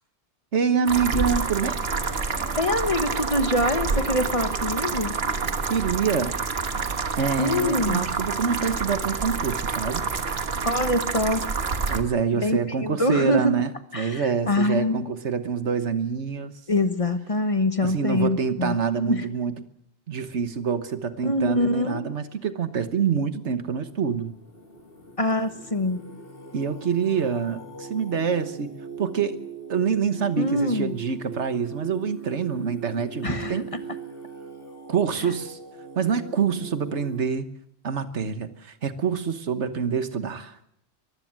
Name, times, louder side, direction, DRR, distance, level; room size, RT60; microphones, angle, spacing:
voice 1, 0.5-1.8 5.6-6.4 7.1-10.0 11.9-16.5 17.8-19.7 20.1-24.3 26.5-28.7 29.0-29.4 29.7-33.6 34.9-35.6 35.9-37.5 37.8-40.6, right 6 dB, 85° right, 11 dB, 1.6 m, -26 dB
sound 1, 0.9-12.0, right 4 dB, 65° right, 1.6 m, -28 dB
sound 2, 1.7-7.8, left 1 dB, 75° left, 5.3 m, -45 dB
voice 2, 2.6-5.1 7.4-8.1 10.6-11.5 12.4-13.5 13.9-15.0 16.7-18.7 19.1-19.2 21.2-22.0 25.2-26.0 30.4-31.0 33.2-33.6, left 1 dB, 30° left, 9 dB, 1.3 m, -24 dB
Singing, 23.4-37.2, right 5 dB, 55° left, 3.4 m, -41 dB
22.5 x 15.5 x 7.6 m, 0.74 s
omnidirectional pair, 1.1 m